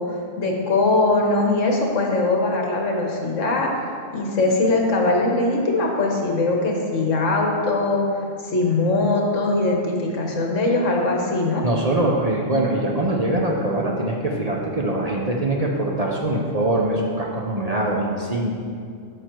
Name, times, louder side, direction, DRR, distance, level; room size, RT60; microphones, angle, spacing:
voice 1, 0.0-3.7 4.1-11.6, left 2 dB, 70° left, 0 dB, 1.6 m, -21 dB
voice 2, 11.6-18.5, right 1 dB, 35° right, -2 dB, 0.8 m, -23 dB
8.8 x 6.4 x 4.6 m, 2.3 s
omnidirectional pair, 1.3 m